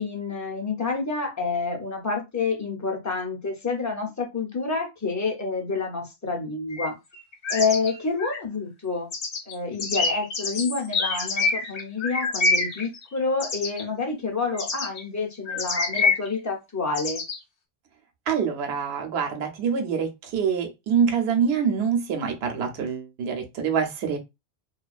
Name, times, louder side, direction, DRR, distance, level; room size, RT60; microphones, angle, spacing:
voice 1, 0.0-7.0 7.5-9.1 9.5-17.2, left 4 dB, 25° left, 0.5 m, -28 dB
sound 1, 6.7-6.9 7.1-8.4 9.1-13.8 14.5-15.0 15.5-16.3 16.9-17.4, left 3 dB, 60° left, 0.8 m, -26 dB
voice 2, 18.3-24.2, right 6 dB, 75° right, 0.9 m, -25 dB
2.3 x 2.2 x 2.4 m
omnidirectional pair, 1.1 m